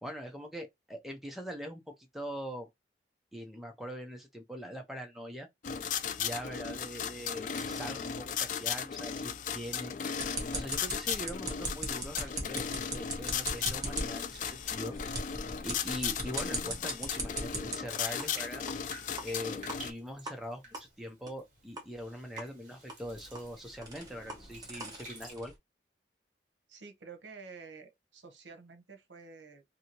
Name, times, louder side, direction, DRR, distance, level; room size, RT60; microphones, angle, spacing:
voice 1, 0.0-2.7 3.3-5.5 6.2-9.9 10.5-14.9 15.6-18.6 19.2-20.6 21.0-25.5, equal, ahead, 0.6 m, -42 dB
sound 1, 5.6-19.9, left 7 dB, 45° left, 0.3 m, -36 dB
sound 2, 10.2-17.7 18.2-18.3 18.7-18.8 19.2-19.3 19.7-19.8 20.3-20.4 20.7-20.8 21.3-21.4 21.8-21.9 22.4-22.5 22.9-25.5, right 2 dB, 20° right, 0.9 m, -39 dB
Bathtub (filling or washing), 18.0-25.3, right 2 dB, 45° right, 1.3 m, -52 dB
voice 2, 26.7-29.6, right 4 dB, 90° right, 0.8 m, -50 dB
2.7 x 2.7 x 2.9 m
head